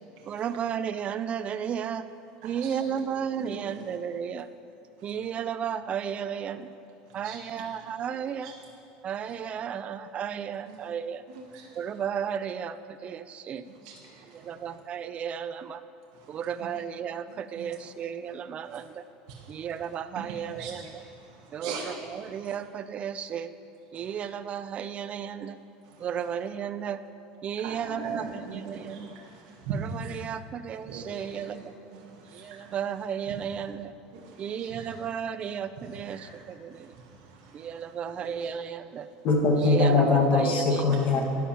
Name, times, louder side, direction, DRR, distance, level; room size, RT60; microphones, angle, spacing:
voice 1, 0.3-2.0 2.4-4.5 5.0-6.7 7.1-8.5 9.0-11.2 11.7-13.6 14.3-15.8 16.3-19.0 19.5-20.9 21.5-23.5 23.9-25.6 26.0-27.0 27.4-29.1 29.7-31.7 32.3-33.9 34.4-36.9 37.5-39.1 39.6-40.8, right 8 dB, 35° right, 13 dB, 0.4 m, -34 dB
voice 2, 2.4-3.0 3.4-3.8 5.0-5.1 7.1-7.7 8.4-8.5 10.7-10.8 11.5-11.8 13.7-14.8 16.1-16.7 17.6-17.8 18.6-18.9 19.3-19.7 20.1-21.9 22.3-22.5 23.9-24.2 25.8-26.1 27.6-30.3 30.9-31.7 31.9-32.7 33.3-33.4 34.1-35.5 35.9-37.9 38.2-38.5, right 5 dB, 70° right, -2 dB, 1.2 m, -42 dB
voice 3, 39.2-41.2, left 3 dB, 50° left, 0 dB, 1.6 m, -22 dB
12.5 x 10.0 x 2.9 m, 2.8 s
supercardioid pair, 120°, 4 cm